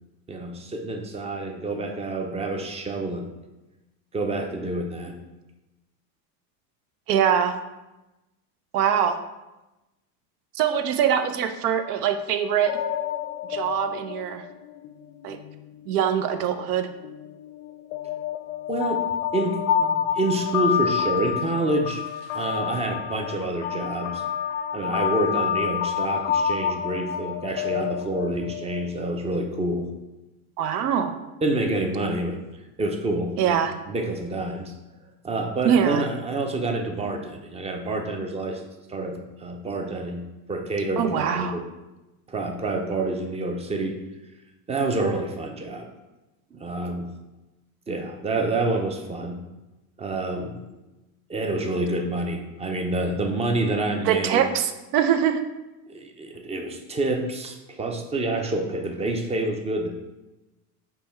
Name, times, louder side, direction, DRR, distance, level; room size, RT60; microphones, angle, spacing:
voice 1, 0.3-3.3 4.1-5.2 18.7-22.0 22.3-24.2 24.7-29.9 31.4-32.4 32.8-33.6 33.9-34.7 35.2-38.6 38.9-41.6 42.3-44.0 44.7-45.9 46.5-47.1 47.9-49.4 50.0-50.6 51.3-54.4 55.9-60.0, right 2 dB, 15° right, 4 dB, 0.4 m, -28 dB
voice 2, 7.1-7.6 8.7-9.2 10.5-12.8 13.5-14.4 15.2-15.4 15.9-16.9 30.6-31.1 33.4-33.7 35.6-36.1 41.0-41.6 54.0-55.4, right 9 dB, 90° right, 8 dB, 0.6 m, -23 dB
sound 1, 12.4-16.0 16.6-29.1, left 8 dB, 75° left, 0.5 m, -28 dB
5.3 x 2.2 x 4.3 m, 1.0 s
supercardioid pair, 105°, 44 cm